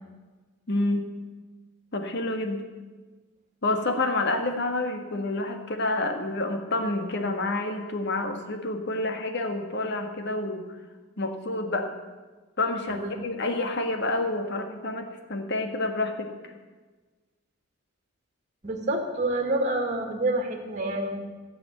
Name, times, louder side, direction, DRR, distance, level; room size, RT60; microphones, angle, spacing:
voice 1, 0.7-1.0 1.9-2.6 3.6-10.6 11.2-11.9 12.6-16.3, left 2 dB, 55° left, 6 dB, 1.7 m, -28 dB
voice 2, 18.6-21.2, right 2 dB, 35° right, 3 dB, 2.0 m, -27 dB
15.0 x 7.2 x 9.2 m, 1.3 s
head